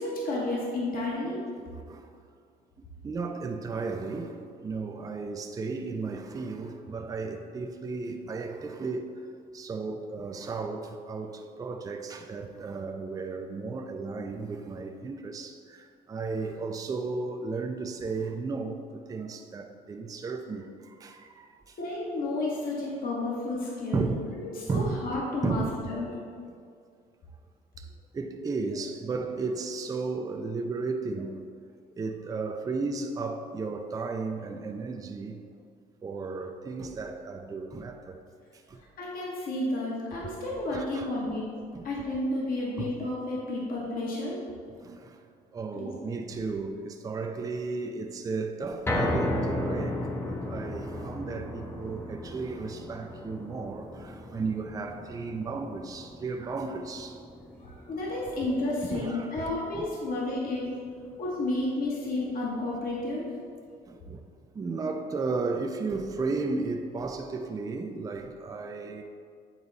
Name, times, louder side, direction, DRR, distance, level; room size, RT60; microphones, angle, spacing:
voice 1, 0.0-1.4 21.8-26.1 39.0-41.5 41.8-44.4 45.7-45.9 57.6-60.7 61.2-63.2, left 2 dB, 60° left, 1.5 m, -31 dB
voice 2, 1.7-2.1 2.8-9.2 9.5-21.8 23.9-25.1 25.4-26.0 27.8-31.4 32.0-35.4 36.0-38.2 38.5-38.8 40.7-41.1 41.7-41.9 42.8-43.1 44.7-45.2 45.5-57.2 58.9-59.8 63.9-64.2 64.5-69.0, right 4 dB, 20° right, 0.4 m, -34 dB
sound 1, 48.9-61.1 61.5-61.6 62.1-62.2, left 1 dB, 15° left, 0.7 m, -35 dB
8.6 x 4.0 x 4.0 m
cardioid pair, 110°, 17 cm